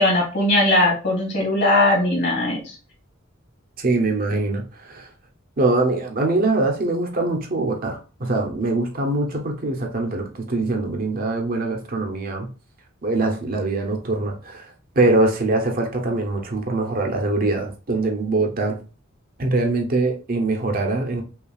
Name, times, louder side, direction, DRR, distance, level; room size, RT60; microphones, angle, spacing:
voice 1, 0.0-2.8, left 1 dB, 55° left, 1.9 m, -19 dB
voice 2, 3.8-5.1 5.6-12.5 13.0-14.7 15.0-18.8 19.4-21.2, right 2 dB, 45° right, 0.7 m, -23 dB
5.5 x 2.4 x 2.3 m
head